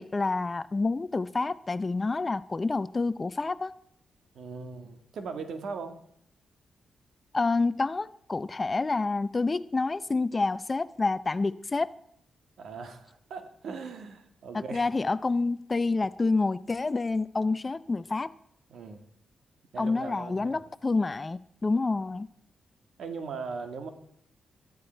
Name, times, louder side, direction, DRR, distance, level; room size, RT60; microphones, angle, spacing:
voice 1, 0.0-3.7 7.3-11.9 14.5-18.3 19.8-22.3, left 3 dB, 25° left, 0.5 m, -28 dB
voice 2, 4.3-6.0 12.6-14.9 18.7-19.0 19.7-20.6 23.0-23.9, right 4 dB, 75° right, 1.9 m, -39 dB
22.5 x 13.5 x 4.5 m
wide cardioid pair, 125°, 0 cm